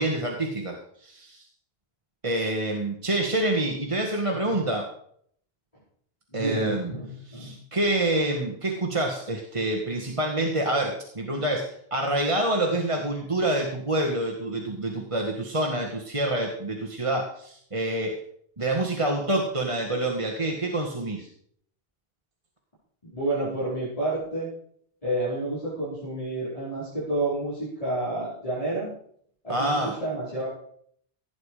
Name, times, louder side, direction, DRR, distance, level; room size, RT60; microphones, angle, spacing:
voice 1, 0.0-1.4 2.2-4.9 6.3-6.9 7.3-18.2 18.6-21.3 29.5-30.0, right 1 dB, 30° right, 0 dB, 1.8 m, -27 dB
voice 2, 4.3-4.6 6.3-7.5 23.1-24.5 25.0-28.9 29.4-30.5, right 2 dB, 35° left, -9 dB, 5.4 m, -30 dB
17.0 x 9.5 x 5.0 m, 0.64 s
omnidirectional pair, 1.0 m